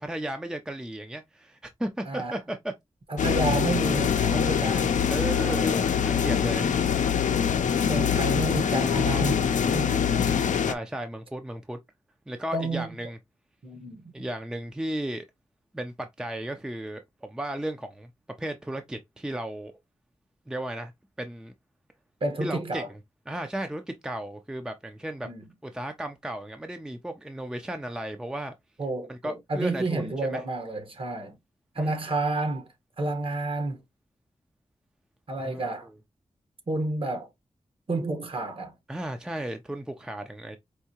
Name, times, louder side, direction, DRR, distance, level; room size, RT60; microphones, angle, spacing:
voice 1, 0.0-2.7 5.1-6.7 9.8-11.8 12.3-13.2 14.1-15.3 15.7-18.1 18.4-19.7 20.5-20.9 21.2-21.5 22.4-22.8 23.3-25.3 25.6-28.5 29.1-30.4 31.8-31.9 35.4-35.9 38.9-40.6, right 1 dB, 5° right, 0.4 m, -35 dB
voice 2, 2.1-2.4 3.1-5.0 5.4-5.7 7.8-10.1 12.5-12.9 13.6-14.1 22.2-22.9 25.2-25.5 28.8-31.4 31.7-32.7 33.0-33.8 35.3-35.9 36.7-37.3 37.9-38.7, right 2 dB, 45° right, 1.2 m, -30 dB
sound 1, 3.2-10.7, left 7 dB, 90° left, 0.5 m, -24 dB
4.6 x 2.7 x 2.8 m
wide cardioid pair, 130°, 12 cm